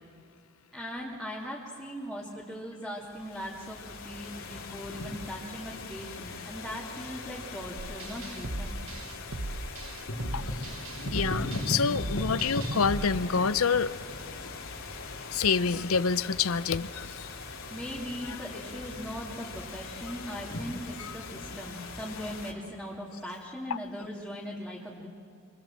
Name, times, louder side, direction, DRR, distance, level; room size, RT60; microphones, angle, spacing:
voice 1, 0.7-8.8 17.7-25.1, equal, ahead, -5 dB, 2.6 m, -39 dB
sound 1, 3.0-22.5, left 2 dB, 70° left, 3.7 m, -39 dB
sound 2, 7.8-13.1, right 2 dB, 75° right, 1.2 m, -38 dB
voice 2, 10.3-10.7 11.1-13.9 15.3-17.3 18.3-18.4 21.0-21.2 23.7-23.8, left 5 dB, 90° left, 15 dB, 0.7 m, -27 dB
27.5 x 25.5 x 7.5 m, 2.2 s
head